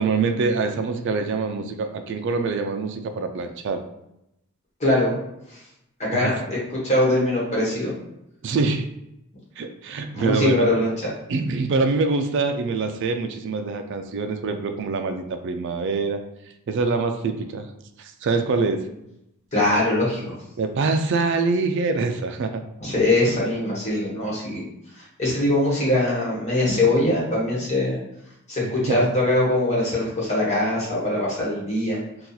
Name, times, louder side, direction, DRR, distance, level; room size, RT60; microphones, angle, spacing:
voice 1, 0.0-3.8 6.1-6.3 8.4-8.9 9.6-10.7 11.3-16.2 16.7-17.7 18.0-18.8 20.6-22.6 28.6-29.1, right 4 dB, 55° right, 6 dB, 0.3 m, -25 dB
voice 2, 4.8-5.1 5.5-5.6 6.0-6.6 6.8-7.9 10.1-10.9 19.5-20.3 22.8-24.6 25.0-28.0 28.5-32.0, left 1 dB, 30° left, -5 dB, 1.1 m, -22 dB
2.8 x 2.3 x 3.8 m, 0.84 s
head